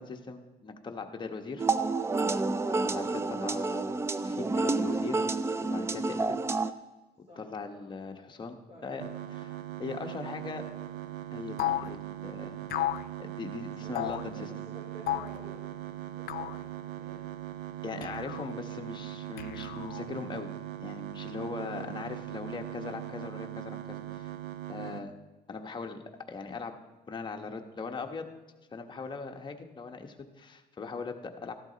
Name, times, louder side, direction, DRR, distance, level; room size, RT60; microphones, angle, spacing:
voice 1, 0.0-1.7 2.4-5.3 5.6-6.4 7.4-9.0 9.3-10.6 11.3-12.6 13.2-14.5 17.8-20.5 20.8-24.3 24.7-25.1 25.5-26.0 26.3-26.7 27.1-28.3 28.7-31.5, left 4 dB, 25° left, 4 dB, 1.2 m, -40 dB
sound 1, 1.6-6.7, right 3 dB, 15° right, 0.4 m, -29 dB
voice 2, 8.7-9.2 13.7-15.6 16.0-16.6 16.8-17.2 21.7-21.9, right 1 dB, 40° right, -5 dB, 4.6 m, -50 dB
sound 2, 9.0-25.0, right 13 dB, 90° right, 0.6 m, -40 dB
sound 3, 11.6-11.9 12.7-13.1 13.9-14.3 15.1-15.4 16.3-16.6 18.0-18.5 19.4-20.1, left 13 dB, 65° left, 0.6 m, -33 dB
14.5 x 12.0 x 4.0 m, 1.2 s
cardioid pair, 110°, 17 cm